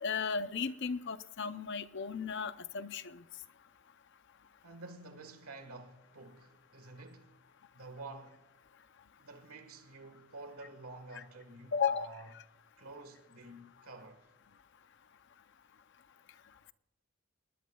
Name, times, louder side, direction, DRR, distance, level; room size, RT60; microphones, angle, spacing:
voice 1, 0.0-3.2 11.1-11.2 11.7-12.1, left 6 dB, 50° left, 0.6 m, -35 dB
voice 2, 4.6-7.4 7.7-8.4 9.2-12.3 12.8-14.3, right 2 dB, 75° right, 1.6 m, -50 dB
29.5 x 20.0 x 2.3 m
head